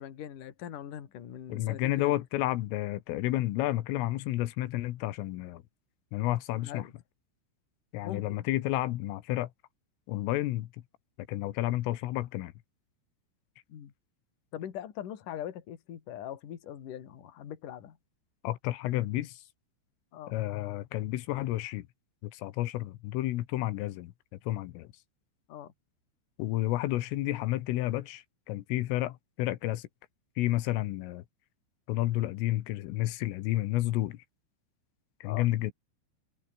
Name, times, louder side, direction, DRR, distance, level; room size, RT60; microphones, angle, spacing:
voice 1, 0.0-2.1 6.6-6.9 8.0-8.3 13.7-13.9 14.5-18.0 20.1-20.4 25.5-25.7 35.3-35.5, left 10 dB, 50° left, 3.3 m, -41 dB
voice 2, 1.5-5.6 6.1-6.9 7.9-9.5 10.1-10.7 11.3-12.5 18.4-19.4 20.3-21.9 22.2-24.1 24.5-24.9 26.4-29.9 30.4-31.2 31.9-34.2 35.2-35.7, left 16 dB, 85° left, 3.9 m, -31 dB
omnidirectional pair, 5.7 m